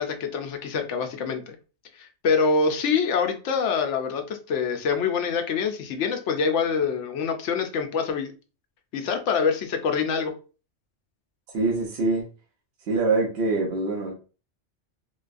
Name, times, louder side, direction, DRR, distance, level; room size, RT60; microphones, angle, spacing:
voice 1, 0.0-1.6 2.0-8.3 8.9-10.3, left 5 dB, 80° left, 5 dB, 0.9 m, -25 dB
voice 2, 11.5-12.3 12.9-14.1, right 3 dB, 60° right, -2 dB, 1.0 m, -24 dB
4.0 x 2.2 x 2.4 m, 0.35 s
omnidirectional pair, 1.2 m